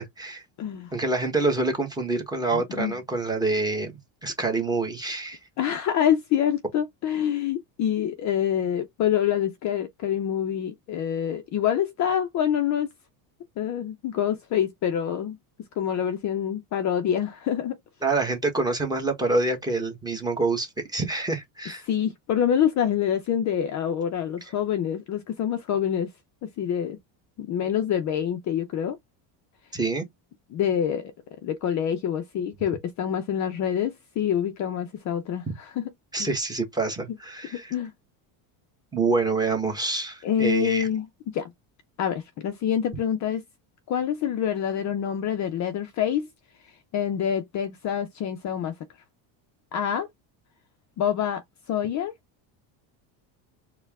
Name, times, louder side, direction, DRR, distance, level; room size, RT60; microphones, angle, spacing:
voice 1, 0.0-0.4 0.9-3.9 4.2-5.4 18.0-21.8 29.7-30.0 36.1-37.7 38.9-40.9, right 3 dB, 10° right, 1.1 m, -26 dB
voice 2, 0.6-0.9 2.5-3.0 5.6-12.9 13.6-15.4 15.8-17.8 21.8-26.1 26.4-27.0 27.4-29.0 30.5-31.1 31.4-35.8 36.2-36.3 37.5-37.9 40.2-41.5 42.0-43.4 43.9-46.3 46.9-48.7 49.7-50.1 51.0-51.4 51.7-52.1, left 9 dB, 40° left, 0.5 m, -26 dB
4.4 x 2.2 x 3.4 m
cardioid pair, 150°, 47 cm